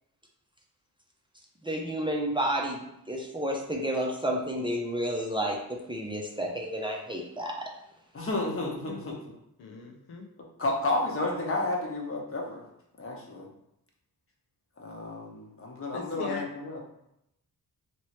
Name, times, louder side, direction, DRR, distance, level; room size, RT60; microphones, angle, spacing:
voice 1, 1.6-2.8 3.1-5.6 5.9-7.7, right 1 dB, 15° right, -1 dB, 0.5 m, -30 dB
voice 2, 8.1-9.2 10.6-12.6 13.0-13.5 14.8-16.8, left 2 dB, 35° left, -1 dB, 0.9 m, -31 dB
voice 3, 9.6-10.2 15.9-16.4, left 5 dB, 85° left, 3 dB, 0.6 m, -38 dB
3.0 x 2.9 x 3.1 m, 0.80 s
cardioid pair, 80°, 38 cm